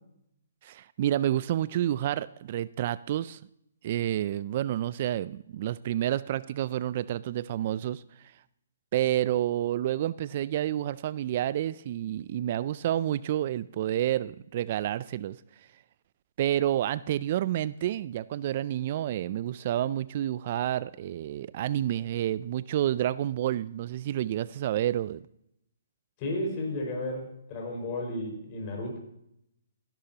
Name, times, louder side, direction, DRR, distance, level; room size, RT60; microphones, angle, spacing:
voice 1, 0.6-3.4 3.8-8.0 8.9-15.4 16.4-25.2, right 12 dB, 45° right, 18 dB, 0.3 m, -29 dB
voice 2, 26.2-29.0, left 1 dB, 35° left, 1 dB, 5.1 m, -33 dB
17.0 x 11.5 x 2.9 m, 0.78 s
hypercardioid pair, 150°, 0 cm